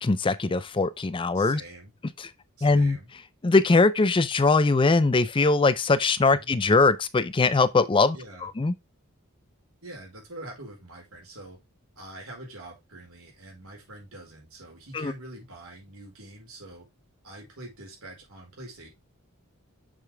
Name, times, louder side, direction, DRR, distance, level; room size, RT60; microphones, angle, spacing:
voice 1, 0.0-1.6 2.6-3.0 3.4-8.2 8.4-8.7 14.9-15.1, left 3 dB, 25° left, 0.4 m, -21 dB
voice 2, 1.3-1.9 2.6-3.1 6.3-6.5 8.1-8.5 9.8-11.6 12.0-16.9 17.2-18.9, right 1 dB, 85° right, 4.4 m, -44 dB
6.8 x 6.6 x 3.4 m
head